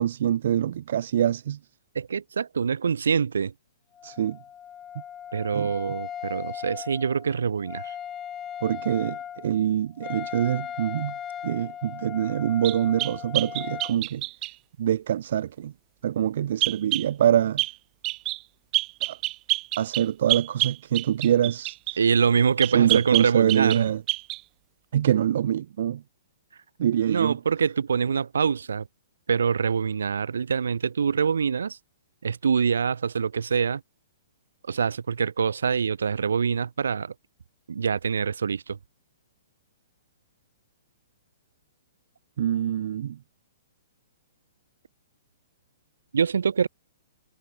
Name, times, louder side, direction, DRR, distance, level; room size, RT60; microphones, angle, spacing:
voice 1, 0.0-1.6 4.0-4.4 5.5-5.7 8.6-11.1 11.4-14.2 14.8-15.7 16.0-17.6 19.0-19.2 19.8-22.0 22.7-24.0 24.9-26.0 26.8-27.4 42.4-43.2, right 10 dB, 65° right, 0.6 m, -25 dB
voice 2, 2.0-3.5 5.3-7.9 22.0-23.9 27.1-28.9 29.3-31.8 32.2-33.8 34.7-37.1 37.7-38.8 46.1-46.7, right 6 dB, 85° right, 1.9 m, -25 dB
Wind instrument woodwind instrument, 3.9-14.0, left 9 dB, 20° left, 3.2 m, -38 dB
sound 1, 12.6-14.6 16.6-17.1 17.6-17.8 18.0-18.4 18.7-22.0 22.6-23.8 24.1-24.4, right 20 dB, 30° right, 1.1 m, -27 dB
hypercardioid pair, 140°, 0 cm